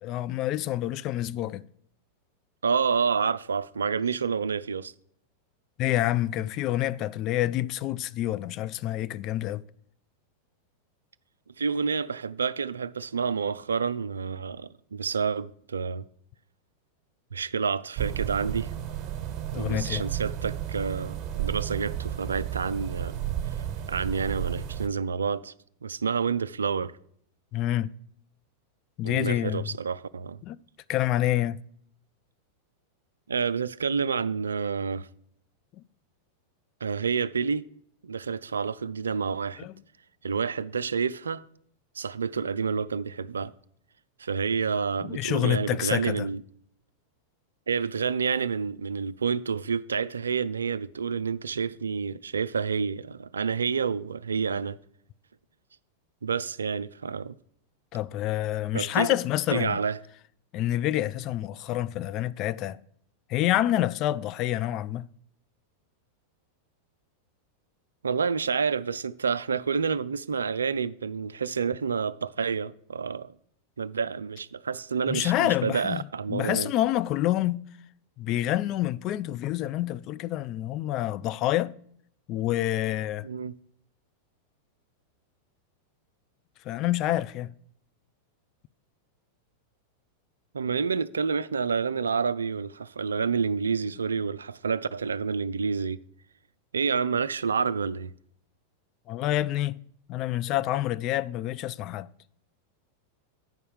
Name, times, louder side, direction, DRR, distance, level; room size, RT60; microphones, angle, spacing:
voice 1, 0.0-1.6 5.8-9.6 19.5-20.0 27.5-27.9 29.0-29.7 30.4-30.6 30.9-31.6 35.8-35.9 39.6-39.7 45.0-46.3 57.9-59.8 60.5-62.8 63.3-65.1 75.1-76.0 76.3-77.7 78.2-81.7 82.3-83.3 86.7-87.5 99.1-99.8 100.1-102.1, left 14 dB, 40° left, 0.3 m, -27 dB
voice 2, 2.6-4.9 11.6-16.0 17.3-18.7 19.6-23.2 23.9-25.5 25.8-27.0 29.0-30.4 33.3-35.1 36.8-37.6 38.0-39.7 40.2-41.4 42.0-43.5 44.2-46.4 47.7-54.8 56.2-57.3 58.7-59.2 59.5-60.0 68.0-73.3 73.8-76.7 83.2-83.6 90.5-96.0 96.7-98.1, right 5 dB, 70° right, 0.3 m, -29 dB
sound 1, 18.0-24.9, right 11 dB, 35° right, 1.3 m, -33 dB
9.3 x 5.5 x 6.4 m
figure-of-eight pair, 90°, 0 cm